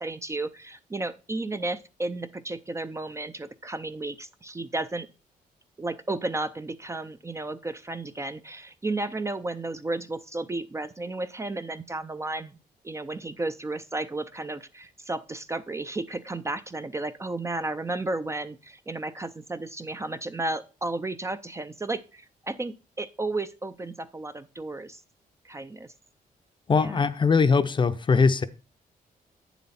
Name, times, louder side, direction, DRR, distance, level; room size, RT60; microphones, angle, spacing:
voice 1, 0.0-5.1 5.8-12.5 12.8-25.0 25.4-25.9 26.7-27.0, right 2 dB, 20° right, 0.5 m, -33 dB
voice 2, 26.7-28.5, left 5 dB, 30° left, 0.6 m, -21 dB
8.7 x 7.1 x 4.2 m
cardioid pair, 110°, 15 cm